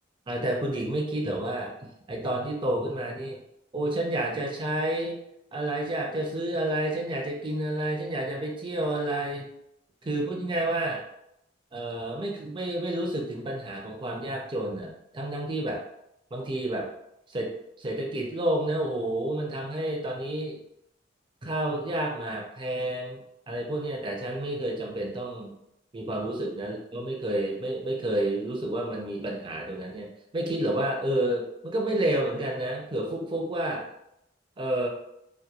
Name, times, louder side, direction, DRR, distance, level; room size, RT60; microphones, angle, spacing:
voice 1, 0.3-1.7 2.1-3.4 3.7-5.2 5.5-9.5 10.0-11.0 11.7-15.8 16.3-16.9 17.3-20.6 21.4-25.5 25.9-33.8 34.6-34.9, right 1 dB, 25° right, 0 dB, 0.4 m, -30 dB
2.8 x 2.2 x 2.3 m, 0.80 s
head